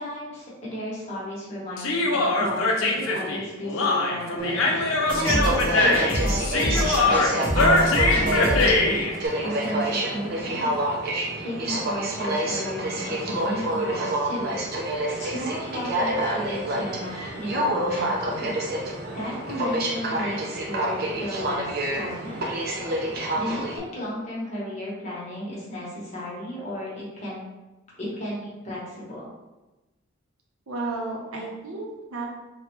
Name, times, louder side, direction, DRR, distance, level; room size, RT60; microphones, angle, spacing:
voice 1, 0.0-4.8 5.2-9.0 9.4-10.7 11.4-14.6 14.9-18.5 19.1-22.4 23.3-27.4 27.9-29.3, equal, 30° left, -7 dB, 1.0 m, -34 dB
Human voice, 1.8-9.1, left 2 dB, 70° left, 0.5 m, -22 dB
Aircraft, 4.4-23.8, right 1 dB, 45° right, 0.4 m, -28 dB
sound 1, 5.1-8.9, equal, 5° left, 0.9 m, -27 dB
voice 2, 30.7-32.2, right 3 dB, 85° right, -1 dB, 0.7 m, -32 dB
3.3 x 2.2 x 3.0 m, 1.1 s
head